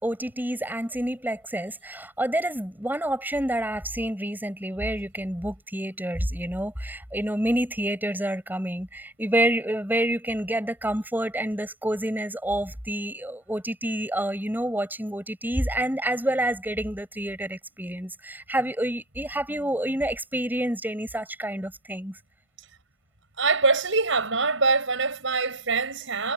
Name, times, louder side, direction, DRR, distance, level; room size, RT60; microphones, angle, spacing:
voice 1, 0.0-22.2, right 1 dB, 10° right, 7.7 m, -28 dB
voice 2, 23.4-26.3, right 4 dB, 65° right, 7.8 m, -24 dB
head